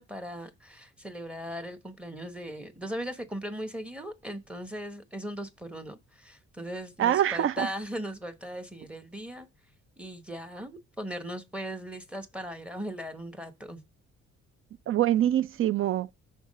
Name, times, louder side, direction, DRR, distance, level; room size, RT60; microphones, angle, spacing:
voice 1, 0.0-9.5 10.0-13.8, equal, 5° right, 0.9 m, -38 dB
voice 2, 7.0-7.7 14.9-16.1, right 11 dB, 45° right, 0.4 m, -25 dB
5.8 x 3.5 x 5.2 m
cardioid pair, 90°, 30 cm